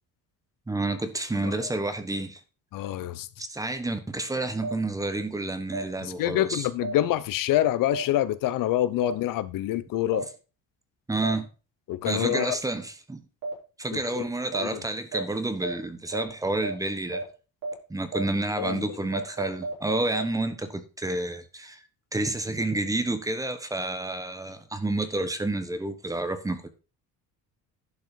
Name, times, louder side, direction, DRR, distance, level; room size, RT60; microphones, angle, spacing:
voice 1, 0.7-2.4 3.4-6.7 11.1-11.5 12.0-13.2 13.8-17.2 17.9-21.8 22.1-26.7, right 2 dB, 10° right, 1.2 m, -29 dB
voice 2, 1.4-1.7 2.7-3.3 6.0-10.3 11.9-12.6 13.9-14.3 14.6-14.8 18.6-19.0, left 13 dB, 75° left, 0.9 m, -27 dB
sound 1, 4.6-4.7 5.7-5.8 6.8-6.9 7.9-8.0 9.0-9.1 10.1-10.2 11.2-11.3 12.3-12.4 13.4-13.5 14.5-14.6 15.1-15.2 15.6-15.7 16.1-16.2 16.6-16.7 17.1-17.2 17.6-17.7 18.1-18.2 18.6-18.7 19.1-20.2, right 3 dB, 65° right, 5.5 m, -31 dB
11.0 x 5.5 x 5.2 m
cardioid pair, 150°, 33 cm